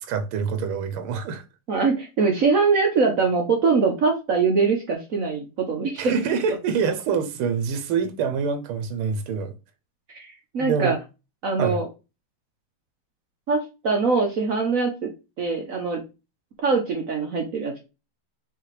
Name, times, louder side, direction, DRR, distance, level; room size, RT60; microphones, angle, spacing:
voice 1, 0.0-1.4 6.0-9.5 10.6-11.0 11.6-11.8, right 6 dB, 85° right, 1.6 m, -26 dB
voice 2, 1.7-6.1 10.1-11.0 11.4-11.9 13.5-15.1 15.4-16.0 16.6-17.8, right 4 dB, 60° right, 0.9 m, -23 dB
5.7 x 2.8 x 3.2 m
omnidirectional pair, 2.3 m